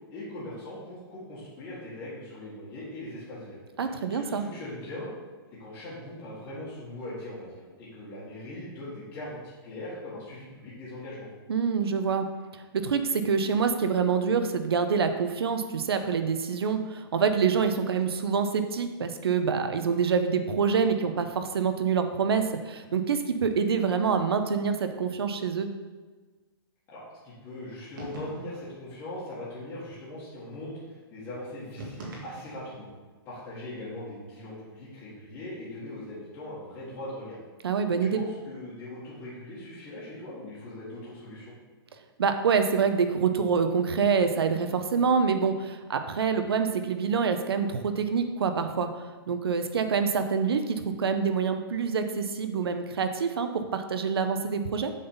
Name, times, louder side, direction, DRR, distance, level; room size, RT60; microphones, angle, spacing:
voice 1, 0.1-5.1 5.6-11.3 26.9-32.9 33.2-37.4 38.0-41.5, left 1 dB, 15° left, -10 dB, 1.6 m, -40 dB
voice 2, 3.8-4.4 11.5-12.3 12.7-25.7 37.6-38.2 42.2-48.9 49.3-54.9, right 6 dB, 75° right, 8 dB, 0.8 m, -26 dB
sound 1, 28.0-28.7 31.8-32.8, right 1 dB, 55° right, 1.9 m, -41 dB
7.4 x 4.0 x 5.5 m, 1.3 s
hypercardioid pair, 175°, 13 cm